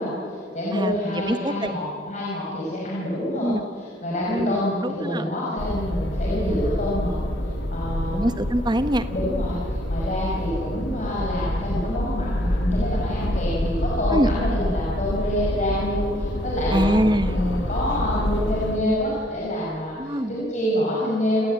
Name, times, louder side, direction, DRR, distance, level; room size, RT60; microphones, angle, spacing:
voice 1, 0.0-7.1 7.4-8.2 9.1-16.9 17.3-21.5, left 1 dB, 40° left, -6 dB, 5.7 m, -27 dB
voice 2, 0.7-1.7 3.4-3.7 4.3-5.2 6.4-6.6 8.1-9.0 14.1-14.3 16.7-17.4 20.0-20.3, right 1 dB, 25° right, 10 dB, 1.2 m, -24 dB
sound 1, 5.6-18.8, equal, 85° left, 2.3 m, -27 dB
29.0 x 17.5 x 9.0 m, 2.5 s
head